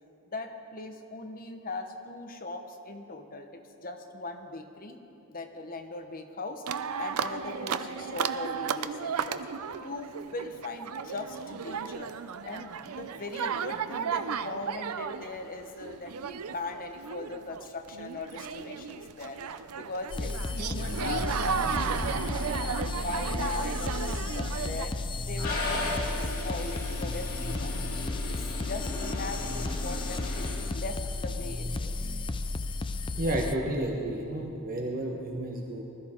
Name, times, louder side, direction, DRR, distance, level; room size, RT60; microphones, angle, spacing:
voice 1, 0.3-5.0 5.3-6.6 6.9-9.4 9.8-12.1 12.4-19.4 19.8-22.1 22.5-24.9 25.2-27.8 28.7-32.0, left 3 dB, 40° left, 5 dB, 1.0 m, -39 dB
sound 1, 6.7-24.9, right 6 dB, 75° right, 0.5 m, -34 dB
sound 2, 20.1-33.6, left 2 dB, 25° left, 0.4 m, -33 dB
Toilet flush, 25.3-30.5, left 2 dB, 70° left, 3.4 m, -36 dB
voice 2, 33.2-35.8, right 1 dB, 40° right, 0 dB, 1.1 m, -31 dB
20.5 x 13.0 x 3.7 m, 2.9 s
head